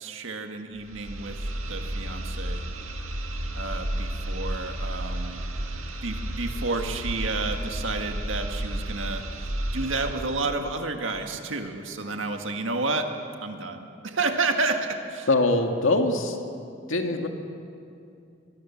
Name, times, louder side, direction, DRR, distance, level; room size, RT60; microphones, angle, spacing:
voice 1, 0.0-1.4 1.6-2.6 3.5-5.4 6.0-9.2 9.7-13.1 13.4-15.3, right 3 dB, 75° right, 4 dB, 1.9 m, -30 dB
sound 1, 0.8-10.4, right 1 dB, 90° right, 2.1 m, -32 dB
voice 2, 15.3-16.4 16.9-17.3, left 2 dB, 75° left, 4 dB, 2.1 m, -23 dB
23.5 x 21.0 x 7.3 m, 2.6 s
head